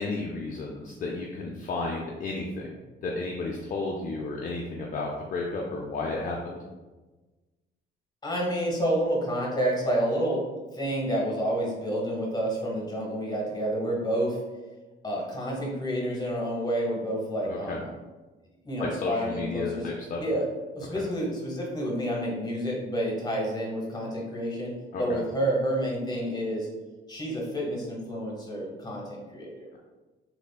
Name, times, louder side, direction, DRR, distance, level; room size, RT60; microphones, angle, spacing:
voice 1, 0.0-2.7 3.0-6.6 17.5-17.8 18.8-20.2 20.9-21.0 24.9-25.2, left 3 dB, 45° left, -1 dB, 0.4 m, -32 dB
voice 2, 8.2-10.4 10.7-14.4 15.0-17.9 18.6-19.9 20.2-20.5 20.7-26.7 27.1-29.7, equal, 20° left, -2 dB, 0.9 m, -29 dB
3.4 x 2.0 x 2.2 m, 1.2 s
cardioid pair, 90°, 20 cm